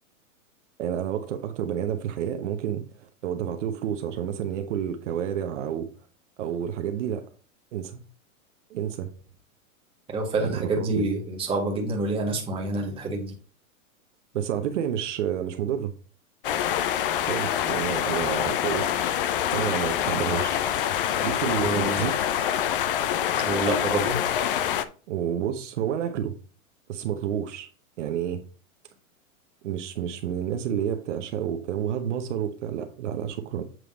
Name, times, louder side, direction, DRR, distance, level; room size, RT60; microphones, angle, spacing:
voice 1, 0.8-5.9 6.4-7.3 7.7-8.0 8.7-9.1 10.4-11.1 14.3-15.9 17.2-18.9 19.5-20.6 21.2-22.2 25.1-26.3 26.9-27.7 28.0-28.4 29.6-33.6, right 9 dB, 60° right, 0.9 m, -29 dB
voice 2, 10.1-13.3 21.6-22.1 23.4-24.2, right 2 dB, 15° right, 1.4 m, -27 dB
sound 1, 16.4-24.8, left 10 dB, 40° left, 0.5 m, -26 dB
7.7 x 3.3 x 5.1 m
hypercardioid pair, 155°, 41 cm